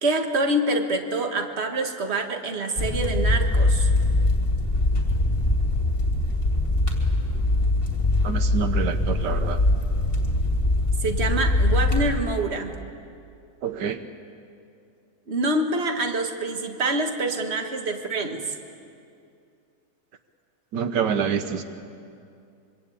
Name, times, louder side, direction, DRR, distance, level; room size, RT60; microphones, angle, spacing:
voice 1, 0.0-3.9 11.0-12.7 15.3-18.5, right 2 dB, 40° right, 5 dB, 1.9 m, -26 dB
sound 1, 2.8-12.2, left 2 dB, 30° left, 3.2 m, -22 dB
voice 2, 8.2-9.6 13.6-14.0 20.7-21.6, right 7 dB, 80° right, 9 dB, 1.6 m, -27 dB
25.5 x 24.0 x 8.6 m, 2.5 s
omnidirectional pair, 1.8 m